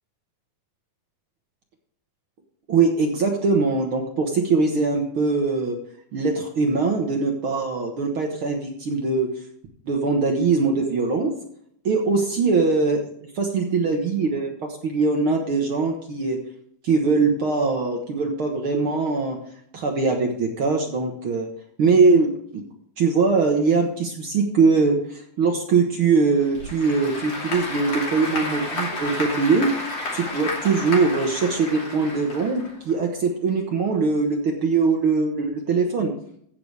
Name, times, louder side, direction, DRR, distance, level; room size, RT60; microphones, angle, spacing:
voice 1, 2.7-5.8 6.1-9.3 9.8-11.3 11.8-13.0 13.3-14.5 14.8-16.4 16.8-19.4 19.7-21.5 21.8-22.6 23.0-29.7 30.1-36.1, right 4 dB, 60° right, 2 dB, 1.4 m, -21 dB
Applause / Crowd, 26.4-33.0, left 2 dB, 35° left, 3.1 m, -31 dB
15.5 x 6.9 x 3.4 m, 0.65 s
omnidirectional pair, 4.0 m